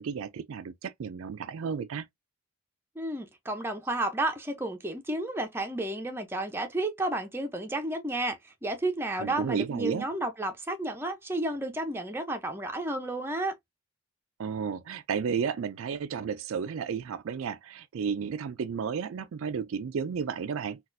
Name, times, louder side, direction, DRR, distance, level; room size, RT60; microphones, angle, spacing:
voice 1, 0.0-2.1 9.2-10.0 14.4-20.8, right 6 dB, 65° right, 0.4 m, -32 dB
voice 2, 3.0-13.5, right 1 dB, 10° right, 0.5 m, -32 dB
4.0 x 2.4 x 2.5 m
head